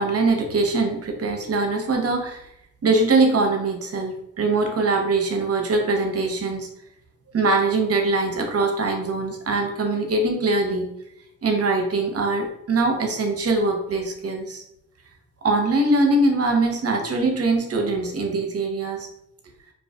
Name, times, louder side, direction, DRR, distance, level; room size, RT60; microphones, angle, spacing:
voice 1, 0.0-2.5 2.8-6.7 7.3-10.9 11.4-14.6 15.4-19.1, right 3 dB, 45° right, 3 dB, 0.7 m, -22 dB
2.4 x 2.4 x 2.3 m, 0.78 s
supercardioid pair, 45°, 33 cm